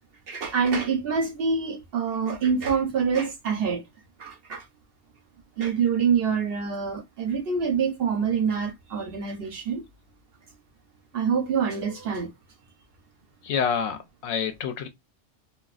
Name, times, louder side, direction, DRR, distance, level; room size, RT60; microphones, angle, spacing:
voice 1, 0.3-3.8 4.2-4.6 5.6-9.8 11.1-12.3, right 6 dB, 60° right, 0.7 m, -26 dB
voice 2, 13.4-14.9, left 7 dB, 70° left, 0.8 m, -27 dB
2.4 x 2.2 x 2.3 m
omnidirectional pair, 1.2 m